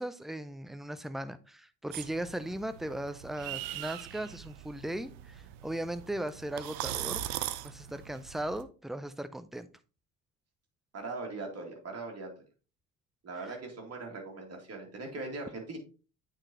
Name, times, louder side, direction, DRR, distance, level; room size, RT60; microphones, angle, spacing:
voice 1, 0.0-7.2 7.6-9.7, right 1 dB, ahead, 0.3 m, -37 dB
sound 1, 1.9-8.6, right 13 dB, 70° right, 0.6 m, -40 dB
voice 2, 10.9-12.3 13.2-15.8, right 3 dB, 35° right, 2.4 m, -40 dB
8.8 x 4.1 x 2.9 m
hypercardioid pair, 55°, 41 cm